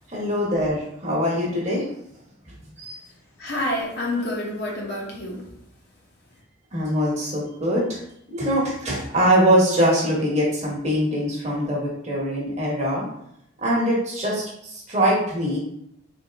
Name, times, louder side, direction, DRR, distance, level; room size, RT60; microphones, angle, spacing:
voice 1, 0.1-1.8 2.8-2.9 6.7-8.0 8.3-13.0 13.6-15.6, equal, 35° right, -4 dB, 1.0 m, -22 dB
voice 2, 3.4-5.5, left 1 dB, 50° left, -3 dB, 0.9 m, -28 dB
3.5 x 2.7 x 3.4 m, 0.75 s
head